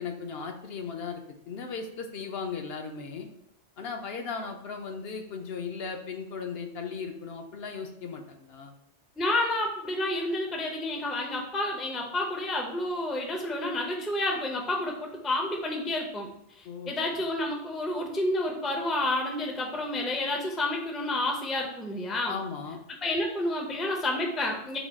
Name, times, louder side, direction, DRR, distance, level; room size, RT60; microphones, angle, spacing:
voice 1, 0.0-3.3 3.8-8.7 16.6-16.9 22.3-22.8, left 5 dB, 70° left, 3 dB, 0.8 m, -37 dB
voice 2, 9.2-16.3 16.6-22.4 23.0-24.8, left 1 dB, ahead, 0 dB, 0.3 m, -30 dB
3.9 x 2.3 x 4.5 m, 0.77 s
omnidirectional pair, 1.1 m